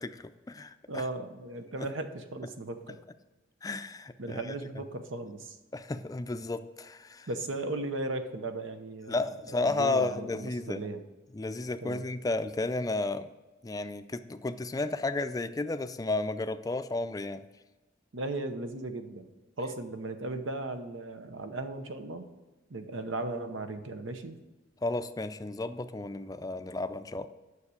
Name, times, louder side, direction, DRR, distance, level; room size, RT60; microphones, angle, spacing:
voice 1, 0.0-1.0 3.6-4.4 5.7-7.3 9.1-10.8 11.3-13.3 13.6-17.5 24.8-27.3, left 2 dB, 20° left, 10 dB, 0.4 m, -33 dB
voice 2, 0.9-3.0 4.2-5.6 7.3-11.0 11.8-12.1 18.1-19.3 19.6-22.3 22.7-24.4, right 2 dB, 85° right, 8 dB, 0.9 m, -37 dB
9.8 x 6.6 x 4.9 m, 1.2 s
head